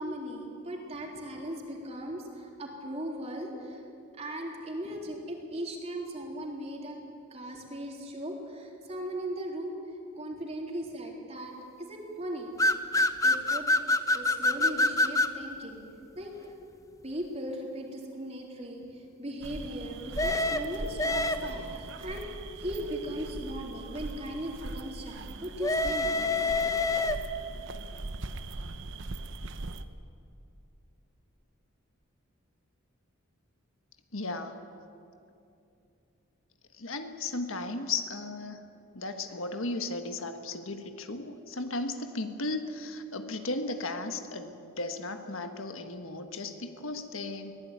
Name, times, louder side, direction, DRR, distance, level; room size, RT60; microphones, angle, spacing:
voice 1, 0.0-3.8 4.2-7.0 7.3-9.7 10.2-12.5 13.2-13.7 14.1-15.8 16.2-16.3 17.0-26.9, equal, 30° right, 0 dB, 3.7 m, -38 dB
sound 1, 12.6-15.4 20.2-21.7 25.6-27.5, left 2 dB, 15° left, 0.8 m, -26 dB
sound 2, 19.4-29.9, right 2 dB, 60° right, 1.0 m, -40 dB
voice 2, 34.1-34.6 36.8-38.6 38.9-47.6, left 2 dB, 70° left, 7 dB, 1.5 m, -35 dB
23.0 x 17.5 x 9.5 m, 2.6 s
head